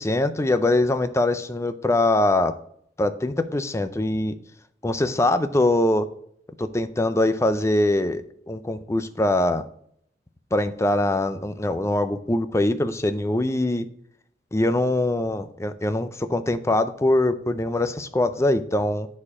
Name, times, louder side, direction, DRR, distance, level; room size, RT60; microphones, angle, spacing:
voice 1, 0.0-2.6 3.0-4.4 4.8-6.1 6.6-9.6 10.5-13.9 14.5-19.1, left 1 dB, 15° left, 11 dB, 0.4 m, -23 dB
9.7 x 4.3 x 4.8 m, 0.67 s
head